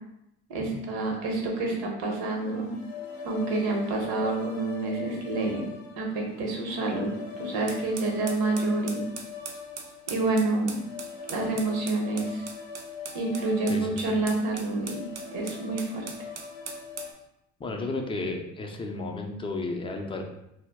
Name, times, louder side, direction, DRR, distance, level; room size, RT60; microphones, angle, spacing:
voice 1, 0.5-2.7 3.2-5.7 6.0-9.0 10.1-10.8 11.3-12.4 13.1-16.0, right 2 dB, 75° right, 1 dB, 0.8 m, -28 dB
sound 1, 2.1-17.1, left 5 dB, 85° left, 0.5 m, -42 dB
sound 2, 7.7-17.2, right 5 dB, 45° right, 0.5 m, -41 dB
voice 2, 13.7-14.1 17.6-20.2, left 2 dB, 15° left, 3 dB, 0.4 m, -33 dB
2.2 x 2.0 x 3.3 m, 0.85 s
hypercardioid pair, 70°, 36 cm